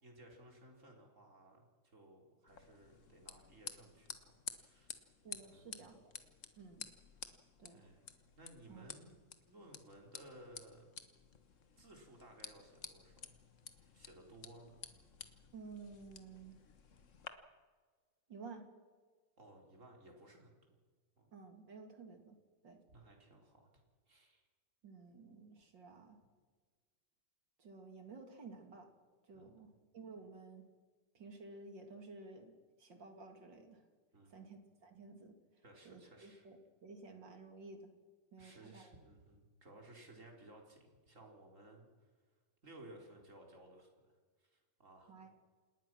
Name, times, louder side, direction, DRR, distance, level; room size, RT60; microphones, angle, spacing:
voice 1, 0.0-4.3 4.6-5.1 5.5-5.8 7.7-8.0 8.4-9.2 9.5-10.9 11.8-13.5 13.9-14.8 19.4-20.6 21.2-21.3 22.9-23.7 24.1-24.4 29.3-29.7 34.1-34.5 35.6-36.5 38.4-42.1 42.6-43.9 44.4-45.3, right 1 dB, 35° right, 1 dB, 4.4 m, -59 dB
sound 1, 2.5-17.3, left 6 dB, 40° left, 1.4 m, -53 dB
voice 2, 5.2-6.1 6.6-6.9 7.6-7.9 8.7-8.8 15.5-16.6 18.3-18.7 21.3-22.4 22.6-22.8 24.8-26.2 27.6-28.9 29.3-30.7 31.1-32.5 32.8-33.8 34.3-35.3 35.8-37.9 38.3-39.0 45.1-45.3, right 4 dB, 55° right, 5 dB, 3.1 m, -53 dB
27.5 x 20.0 x 6.2 m, 1.5 s
omnidirectional pair, 2.4 m